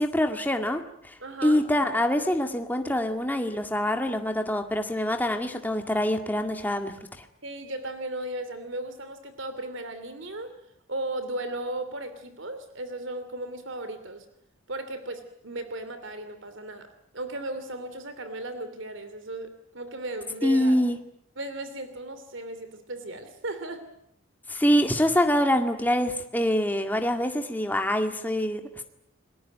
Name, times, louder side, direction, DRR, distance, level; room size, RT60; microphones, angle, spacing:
voice 1, 0.0-1.1 1.4-6.9 20.4-21.0 24.5-28.8, left 1 dB, 10° left, 5 dB, 2.0 m, -25 dB
voice 2, 1.2-1.6 7.4-10.5 10.9-14.3 14.7-16.9 17.1-20.8 21.4-23.8, right 2 dB, 65° right, 10 dB, 2.8 m, -36 dB
29.0 x 20.5 x 9.2 m, 0.73 s
head